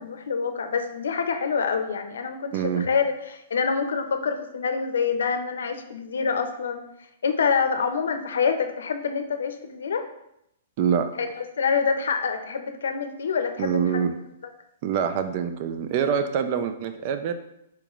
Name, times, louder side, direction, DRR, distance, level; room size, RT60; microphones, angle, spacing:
voice 1, 0.0-6.8 7.2-10.0 11.2-14.0, left 5 dB, 90° left, 7 dB, 0.5 m, -26 dB
voice 2, 2.5-2.8 10.8-11.1 13.6-14.1 14.8-17.3, right 7 dB, 40° right, 9 dB, 0.4 m, -25 dB
4.4 x 3.7 x 3.0 m, 0.80 s
hypercardioid pair, 155°, 0 cm